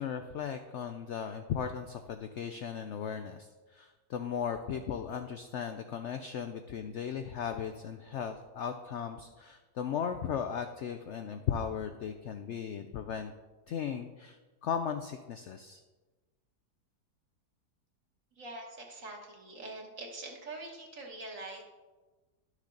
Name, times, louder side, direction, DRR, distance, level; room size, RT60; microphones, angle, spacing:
voice 1, 0.0-13.3 13.7-14.4 14.6-15.8, left 7 dB, 90° left, 8 dB, 0.6 m, -36 dB
voice 2, 18.3-21.6, right 2 dB, 55° right, 0 dB, 1.8 m, -44 dB
11.5 x 6.4 x 3.8 m, 1.3 s
omnidirectional pair, 1.8 m